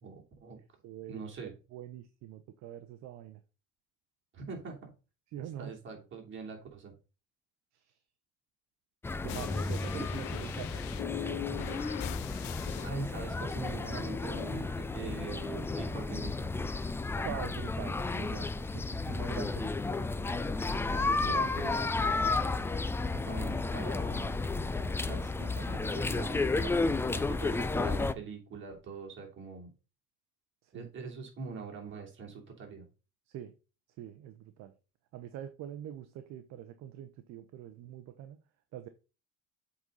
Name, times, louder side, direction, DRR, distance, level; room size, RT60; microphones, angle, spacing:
voice 1, 0.0-0.6 1.1-1.5 4.3-4.9 5.6-6.9 12.8-16.5 23.0-24.5 25.0-29.7 30.7-32.8, right 4 dB, 40° right, 3.1 m, -43 dB
voice 2, 0.6-3.4 5.3-5.7 7.7-8.0 9.2-10.8 11.2-11.9 15.0-15.1 17.2-19.9 21.1-22.0 30.6-30.9 33.3-33.5 34.0-34.7 35.1-38.4 38.7-38.9, right 11 dB, 60° right, 0.9 m, -44 dB
sound 1, 9.0-28.1, left 3 dB, 10° left, 0.3 m, -32 dB
sound 2, 9.3-12.9 13.8-14.6, left 18 dB, 70° left, 0.5 m, -41 dB
7.9 x 4.1 x 5.4 m
cardioid pair, 130°, 30 cm